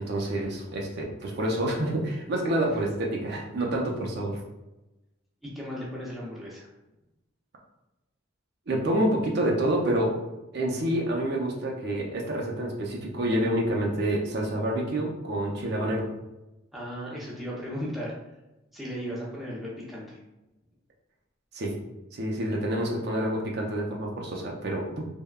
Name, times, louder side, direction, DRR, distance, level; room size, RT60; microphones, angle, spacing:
voice 1, 0.0-4.4 8.7-10.2 10.5-16.1 21.5-21.7 22.1-25.1, right 1 dB, 55° right, -1 dB, 0.5 m, -28 dB
voice 2, 5.4-6.7 16.7-18.1 18.7-20.2, equal, ahead, -6 dB, 0.6 m, -36 dB
3.4 x 2.1 x 2.2 m, 0.98 s
head